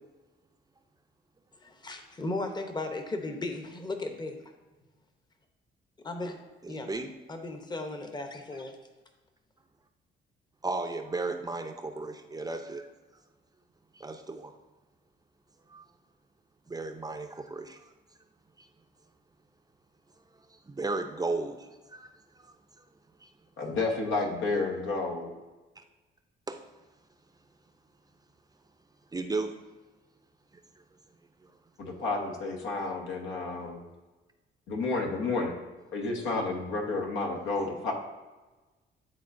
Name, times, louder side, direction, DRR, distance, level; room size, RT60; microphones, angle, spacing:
voice 1, 1.6-4.5 6.0-6.4 6.7-6.9 7.3-8.8, left 2 dB, 20° left, 5 dB, 0.8 m, -36 dB
voice 2, 6.6-7.1 10.6-12.9 13.9-14.5 15.7-15.8 16.7-17.8 18.6-18.7 20.7-22.1 22.4-22.5 23.2-23.3 26.5-26.6 29.1-29.5, right 3 dB, 20° right, 6 dB, 0.5 m, -34 dB
voice 3, 23.6-25.3 31.8-33.8 34.7-35.5 35.9-37.9, left 3 dB, 85° left, 1 dB, 1.3 m, -31 dB
11.0 x 3.6 x 2.6 m, 1.2 s
cardioid pair, 90°, 20 cm